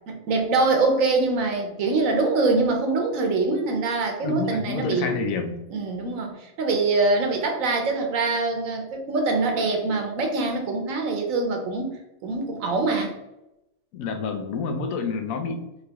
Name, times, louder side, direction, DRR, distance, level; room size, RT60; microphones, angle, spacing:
voice 1, 0.1-5.1 5.7-13.1, right 3 dB, 80° right, 4 dB, 1.2 m, -24 dB
voice 2, 4.2-5.6 13.9-15.6, left 4 dB, 85° left, 7 dB, 1.0 m, -28 dB
3.8 x 3.2 x 3.4 m, 0.90 s
omnidirectional pair, 1.4 m